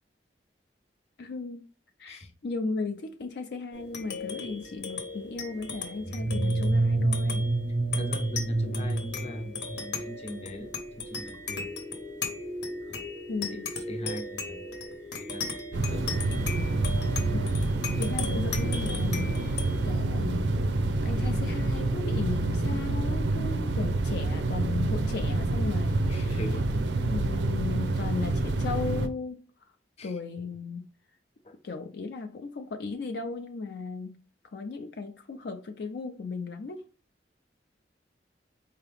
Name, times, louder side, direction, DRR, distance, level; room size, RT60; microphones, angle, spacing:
voice 1, 1.2-1.7 2.0-7.4 13.3-13.7 17.3-17.6 18.0-19.6 19.8-26.5 27.0-29.4 30.0-30.9 31.6-34.2 34.5-36.8, left 4 dB, 65° left, 0.4 m, -36 dB
sound 1, 3.7-22.6, left 3 dB, 85° left, 1.1 m, -38 dB
sound 2, 6.0-10.2, right 2 dB, 15° right, 0.4 m, -27 dB
voice 2, 7.9-10.7 11.0-11.7 12.9-13.0 13.5-13.6 13.9-14.6 15.3-15.5 15.7-16.0 26.1-26.7 30.0-30.1 31.4-31.5, left 1 dB, 35° left, 0.7 m, -41 dB
sound 3, 15.7-29.1, right 2 dB, 85° right, 0.5 m, -27 dB
4.7 x 2.8 x 3.4 m
head